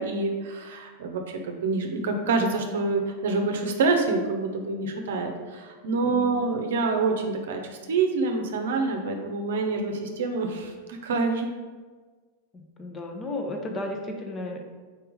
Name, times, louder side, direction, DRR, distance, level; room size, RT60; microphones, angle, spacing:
voice 1, 0.0-11.5, right 3 dB, 60° right, 4 dB, 0.8 m, -27 dB
voice 2, 6.1-6.4 12.8-14.6, left 1 dB, 20° left, 2 dB, 0.8 m, -33 dB
4.5 x 4.5 x 5.1 m, 1.4 s
figure-of-eight pair, 90°, 0 cm